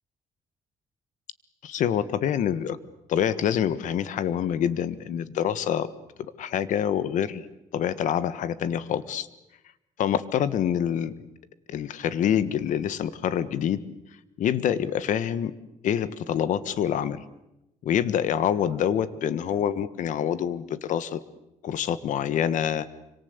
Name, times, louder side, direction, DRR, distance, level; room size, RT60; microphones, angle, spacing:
voice 1, 1.6-2.8 3.1-5.9 6.4-7.4 7.7-9.3 10.0-11.1 11.7-13.8 14.4-15.5 15.8-17.2 17.8-21.2 21.6-22.9, left 9 dB, 75° left, 15 dB, 1.5 m, -26 dB
27.0 x 25.0 x 8.1 m, 0.90 s
cardioid pair, 140°, 13 cm